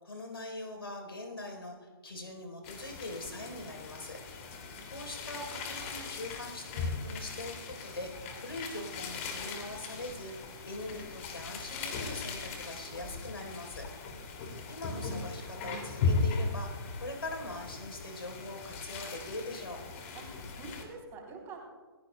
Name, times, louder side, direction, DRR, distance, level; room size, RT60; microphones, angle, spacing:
voice 1, 0.0-4.2 4.9-7.5 7.8-8.1 8.4-13.9 14.7-19.8, left 2 dB, 80° left, 3 dB, 3.8 m, -42 dB
sound 1, 2.6-20.8, left 4 dB, 35° left, 2.5 m, -38 dB
voice 2, 4.7-5.1 14.3-14.4 20.1-21.7, right 4 dB, 20° right, 0 dB, 3.3 m, -47 dB
28.0 x 15.0 x 2.2 m, 1.3 s
figure-of-eight pair, 135°, 13 cm